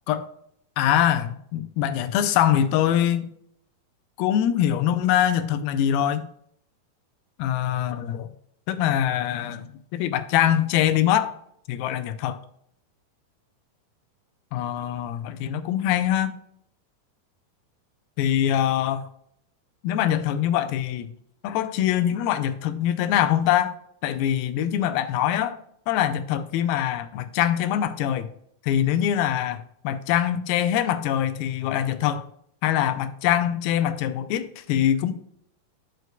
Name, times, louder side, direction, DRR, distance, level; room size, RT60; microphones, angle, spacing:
voice 1, 0.8-3.3 4.2-6.3 7.4-8.3 8.7-11.3 11.7-12.4 14.5-16.3 18.2-19.0 19.8-21.1 21.4-23.7 24.0-25.6 25.9-28.3 28.6-32.3 32.6-35.1, left 11 dB, 90° left, 11 dB, 2.5 m, -23 dB
9.1 x 6.6 x 2.2 m, 0.69 s
omnidirectional pair, 4.3 m